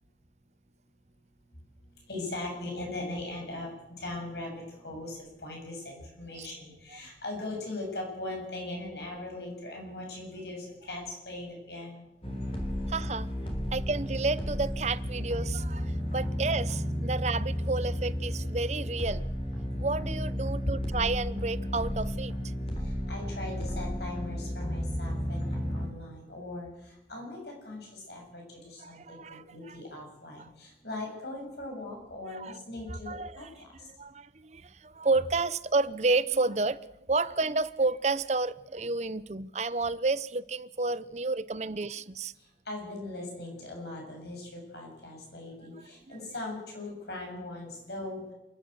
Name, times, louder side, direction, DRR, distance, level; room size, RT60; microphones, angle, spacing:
voice 1, 1.9-12.1 22.8-33.9 42.4-48.3, left 2 dB, 75° left, 7.6 m, -40 dB
sound 1, 12.2-25.9, equal, 30° left, 3.6 m, -33 dB
voice 2, 12.9-13.3 13.7-19.2 19.8-22.3 28.8-29.8 30.4-30.5 32.3-32.6 32.9-33.5 33.9-36.8 37.1-42.3 46.1-46.2, right 3 dB, 40° right, 0.7 m, -31 dB
28.5 x 11.5 x 8.0 m
head